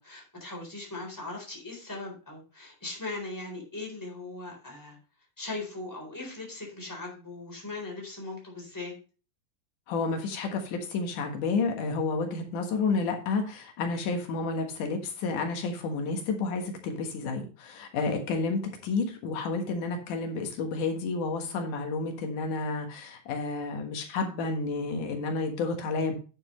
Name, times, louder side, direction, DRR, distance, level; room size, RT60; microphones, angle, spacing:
voice 1, 0.0-5.0 5.4-8.9, left 2 dB, 5° left, 0 dB, 3.8 m, -39 dB
voice 2, 9.9-26.1, left 4 dB, 85° left, 4 dB, 3.1 m, -30 dB
9.5 x 8.8 x 3.2 m, 0.34 s
omnidirectional pair, 3.5 m